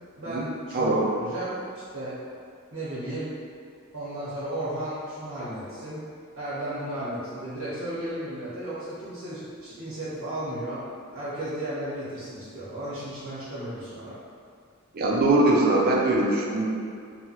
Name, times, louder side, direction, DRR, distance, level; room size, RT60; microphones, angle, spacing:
voice 1, 0.2-1.6 1.9-2.2 2.7-3.3 3.9-6.0 6.3-10.8 11.1-14.2, right 1 dB, 90° right, -12 dB, 1.0 m, -34 dB
voice 2, 0.7-1.1 14.9-16.7, right 2 dB, 45° right, -2 dB, 0.4 m, -22 dB
3.0 x 2.2 x 2.8 m, 2.3 s
head